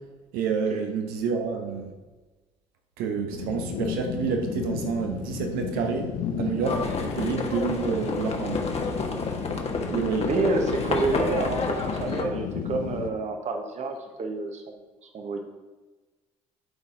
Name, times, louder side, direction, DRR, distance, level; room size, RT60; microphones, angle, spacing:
voice 1, 0.3-1.9 3.0-6.1 6.4-8.7 9.9-10.3, right 6 dB, 75° right, 4 dB, 1.2 m, -28 dB
sound 1, 3.3-13.1, left 8 dB, 70° left, 0.8 m, -34 dB
Livestock farm animals working animals, 6.6-12.2, left 3 dB, 45° left, 1.3 m, -30 dB
voice 2, 10.2-14.6 15.0-15.4, right 3 dB, 45° right, 4 dB, 1.3 m, -28 dB
12.0 x 4.2 x 3.9 m, 1.2 s
hypercardioid pair, 65°, 16 cm